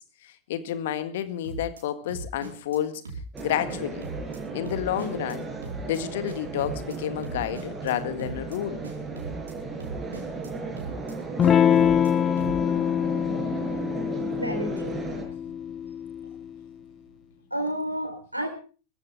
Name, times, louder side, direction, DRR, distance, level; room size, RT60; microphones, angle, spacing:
voice 1, 0.0-3.0 3.4-4.1 4.5-5.5 5.8-8.8, left 11 dB, 55° left, 1.8 m, -30 dB
sound 1, 1.4-1.8 2.1-2.8 3.1-3.4 3.7-4.4 4.7-5.4 5.6-6.0 6.3-7.0 7.2-7.9 8.2-8.6 8.8-9.5 9.8-10.5 10.8-11.1 11.4-12.1 12.4-12.7, right 3 dB, 70° right, 4.6 m, -38 dB
sound 2, 3.3-15.2, right 4 dB, 15° right, 5.9 m, -36 dB
Electric guitar / Strum, 11.4-16.5, left 8 dB, 25° left, 0.7 m, -24 dB
voice 2, 14.3-15.5 17.5-18.5, equal, 85° right, 4.5 m, -32 dB
22.5 x 15.0 x 3.6 m
figure-of-eight pair, 90°, 0 cm